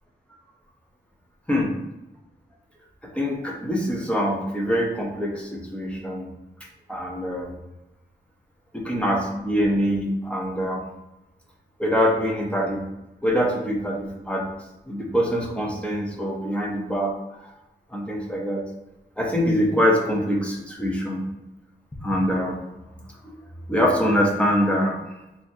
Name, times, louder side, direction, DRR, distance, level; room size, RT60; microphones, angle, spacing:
voice 1, 3.0-6.3 6.9-7.5 8.7-10.8 11.8-12.8 13.2-14.5 14.9-17.1 17.9-18.6 19.2-21.3 22.0-22.6 23.7-25.0, equal, 5° left, -1 dB, 0.6 m, -24 dB
2.8 x 2.5 x 4.2 m, 0.97 s
wide cardioid pair, 125°, 18 cm